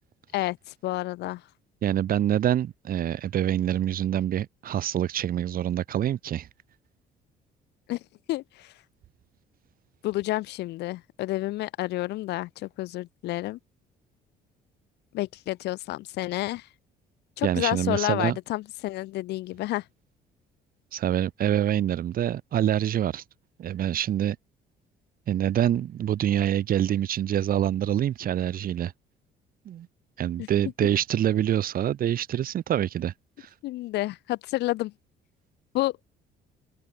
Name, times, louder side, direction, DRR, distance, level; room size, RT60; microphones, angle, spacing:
voice 1, 0.3-1.4 7.9-8.0 8.3-8.7 10.0-13.6 15.1-16.7 17.4-19.8 30.4-30.5 33.6-34.9 35.7-36.0, left 17 dB, 80° left, 7.5 m, -30 dB
voice 2, 1.8-6.5 17.4-18.4 20.9-23.2 23.6-24.4 25.3-28.9 29.7-29.9 30.2-33.1 33.4-33.5, right 11 dB, 60° right, 5.7 m, -26 dB
open air
cardioid pair, 110°, 17 cm